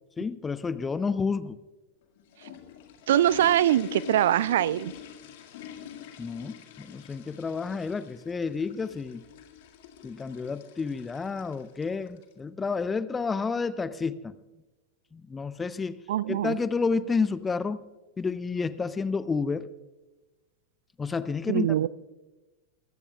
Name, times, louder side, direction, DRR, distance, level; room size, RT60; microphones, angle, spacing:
voice 1, 0.2-1.6 6.2-9.2 10.0-14.3 15.1-16.0 16.3-17.8 18.2-19.7 21.0-21.7, left 4 dB, 15° left, 15 dB, 0.6 m, -30 dB
sound 1, 2.0-12.3, left 9 dB, 50° left, 2.0 m, -45 dB
voice 2, 3.1-4.9 16.1-16.6 21.5-21.9, right 12 dB, 60° right, 22 dB, 0.4 m, -23 dB
23.5 x 15.5 x 2.3 m, 1.1 s
figure-of-eight pair, 90°, 0 cm